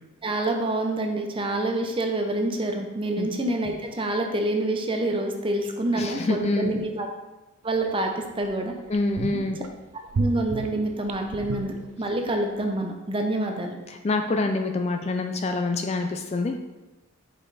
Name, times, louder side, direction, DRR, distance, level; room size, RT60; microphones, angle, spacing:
voice 1, 0.2-7.1 7.6-8.7 10.1-13.8, right 1 dB, 25° right, 3 dB, 0.6 m, -27 dB
voice 2, 5.9-6.7 8.9-9.6 13.9-16.6, left 2 dB, 30° left, 5 dB, 0.3 m, -26 dB
sound 1, 7.8-7.9 8.4-8.5 8.9-9.7 10.1-12.4 12.6-12.7, right 4 dB, 70° right, 0.5 m, -31 dB
5.4 x 5.2 x 4.1 m, 1.1 s
head